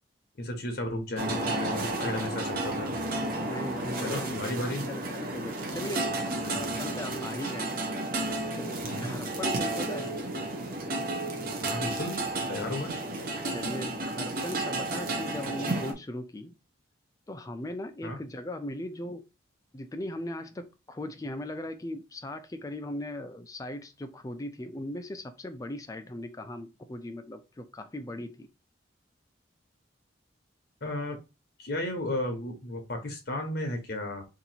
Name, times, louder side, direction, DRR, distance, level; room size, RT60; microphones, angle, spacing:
voice 1, 0.4-2.9 4.0-4.8 6.4-6.7 8.8-9.1 11.6-12.2 12.5-12.9 18.0-18.2 30.8-31.2 31.6-34.2, left 1 dB, 55° left, 0.8 m, -34 dB
sound 1, 1.2-15.9, right 2 dB, 45° right, 0.7 m, -32 dB
voice 2, 3.4-4.4 4.9-7.8 8.6-10.1 13.5-16.5 17.3-19.2 19.7-28.5, left 1 dB, 15° left, 0.3 m, -38 dB
2.8 x 2.6 x 4.0 m
head